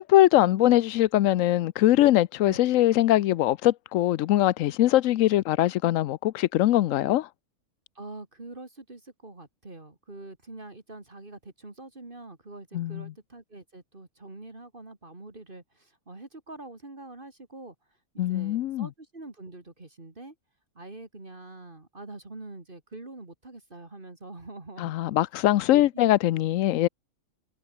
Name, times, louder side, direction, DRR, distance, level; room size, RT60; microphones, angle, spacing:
voice 1, 0.0-7.3 12.7-13.1 18.2-18.9 24.8-26.9, left 14 dB, 75° left, 0.9 m, -22 dB
voice 2, 7.9-17.7 18.1-20.3 20.7-24.9 25.7-26.4, right 2 dB, 40° right, 2.9 m, -44 dB
omnidirectional pair, 1.4 m